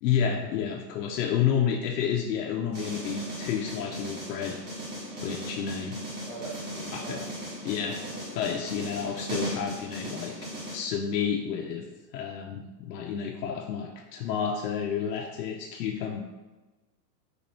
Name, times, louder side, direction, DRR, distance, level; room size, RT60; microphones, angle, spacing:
voice 1, 0.0-4.6 5.2-6.0 6.9-7.2 7.6-8.0 8.4-10.4 10.7-16.2, left 8 dB, 75° left, 1 dB, 0.6 m, -30 dB
sound 1, 2.7-10.8, equal, 20° right, 1.3 m, -37 dB
voice 2, 5.1-5.6 6.2-7.3 7.8-8.6, right 3 dB, ahead, -16 dB, 0.3 m, -44 dB
4.0 x 2.4 x 3.0 m, 1.2 s
hypercardioid pair, 130°, 50 cm